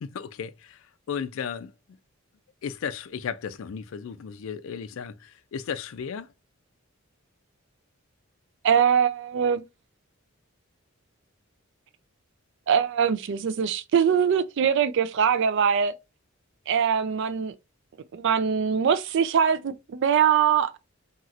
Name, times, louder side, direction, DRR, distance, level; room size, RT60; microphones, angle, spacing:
voice 1, 0.0-1.7 2.6-6.3, left 7 dB, 65° left, 0.3 m, -35 dB
voice 2, 8.6-9.6 12.7-15.9 16.7-17.5 18.1-20.8, right 7 dB, 60° right, 0.3 m, -22 dB
2.9 x 2.8 x 2.3 m
head